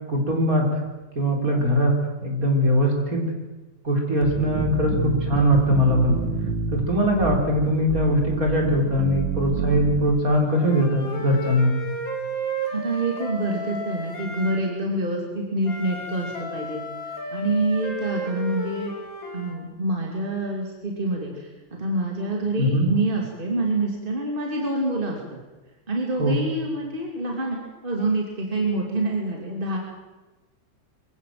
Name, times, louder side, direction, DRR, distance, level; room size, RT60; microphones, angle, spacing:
voice 1, 0.1-0.7 1.2-2.0 2.2-3.2 3.8-6.2 6.7-11.7 22.6-22.9 26.2-26.4, equal, 45° right, 1 dB, 4.6 m, -21 dB
sound 1, 4.2-10.2, right 5 dB, 80° right, 2.2 m, -28 dB
Wind instrument woodwind instrument, 10.5-14.6 15.6-19.6, right 1 dB, 50° left, 3.1 m, -33 dB
voice 2, 12.7-16.8 17.3-18.9 19.3-21.5 21.8-25.4 25.9-29.8, right 2 dB, 25° right, 0 dB, 3.1 m, -26 dB
24.5 x 16.5 x 7.8 m, 1.2 s
omnidirectional pair, 2.0 m